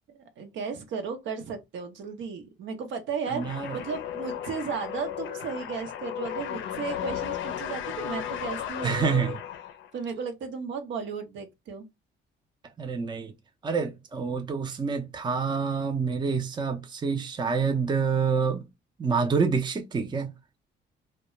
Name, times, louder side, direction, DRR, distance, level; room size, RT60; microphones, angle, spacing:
voice 1, 0.1-9.1 9.9-11.9, right 6 dB, 70° right, 0.7 m, -35 dB
sound 1, 3.3-10.0, left 10 dB, 75° left, 0.4 m, -35 dB
voice 2, 3.3-3.8 8.8-9.4 12.8-13.3 13.6-18.7 19.0-20.3, right 5 dB, 20° right, 0.5 m, -27 dB
2.3 x 2.2 x 2.9 m
cardioid pair, 90°, 20 cm